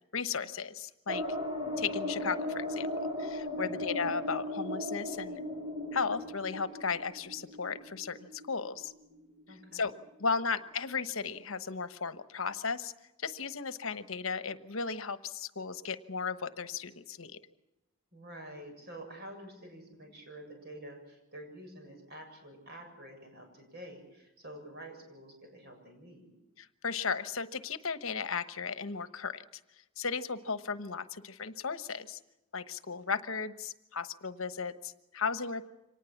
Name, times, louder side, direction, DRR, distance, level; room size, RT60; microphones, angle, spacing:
voice 1, 0.1-1.2 1.8-2.9 3.2-5.4 5.9-8.9 9.7-9.9 10.2-12.9 13.2-17.3 26.6-29.4 30.0-32.2 32.5-35.7, left 5 dB, 70° left, 12 dB, 1.1 m, -35 dB
sound 1, 1.1-9.6 9.9-10.0 10.3-10.4, left 1 dB, 20° right, 4.4 m, -37 dB
voice 2, 3.6-3.9 9.5-9.9 18.1-26.3, right 1 dB, 50° right, 3 dB, 7.4 m, -48 dB
25.0 x 19.0 x 7.3 m, 0.93 s
head